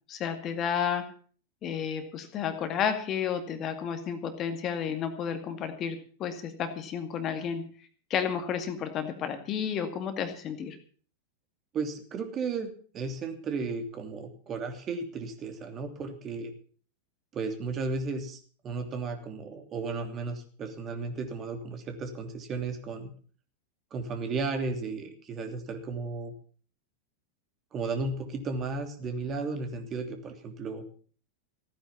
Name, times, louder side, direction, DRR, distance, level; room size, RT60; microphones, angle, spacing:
voice 1, 0.1-1.0 1.6-7.6 8.1-10.8, left 7 dB, 30° left, 8 dB, 2.1 m, -31 dB
voice 2, 11.7-16.5 17.3-23.1 23.9-26.3 27.7-30.8, right 4 dB, 30° right, 6 dB, 3.0 m, -34 dB
16.0 x 9.7 x 7.2 m, 0.43 s
figure-of-eight pair, 90°, 0 cm